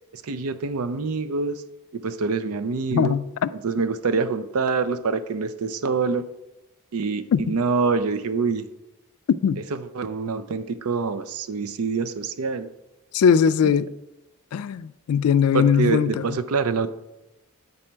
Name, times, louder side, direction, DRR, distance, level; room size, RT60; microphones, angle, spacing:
voice 1, 0.1-1.6 1.9-3.2 3.6-6.3 6.9-8.7 9.9-12.7 13.6-13.7 15.5-16.9, right 4 dB, 85° right, 0.5 m, -25 dB
voice 2, 2.9-3.5 7.3-7.4 9.4-9.6 13.1-13.9 14.5-16.4, left 7 dB, 80° left, 0.3 m, -20 dB
8.6 x 4.2 x 4.4 m
head